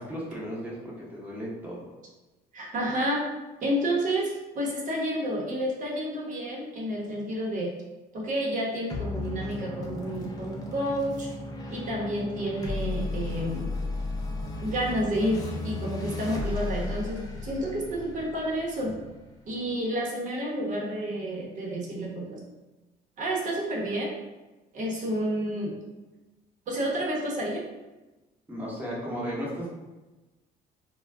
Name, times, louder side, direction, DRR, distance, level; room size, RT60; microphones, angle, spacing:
voice 1, 0.0-1.8 28.5-29.7, equal, 10° right, -6 dB, 1.0 m, -35 dB
voice 2, 2.5-3.2 3.6-7.7 8.1-11.3 11.7-13.7 14.6-19.0 19.5-22.4 23.2-24.1 24.7-25.7 26.7-27.6, equal, 50° right, -3 dB, 0.9 m, -30 dB
sound 1, 8.9-19.7, left 2 dB, 20° left, 0.5 m, -35 dB
2.3 x 2.2 x 3.3 m, 1.1 s
cardioid pair, 110°, 17 cm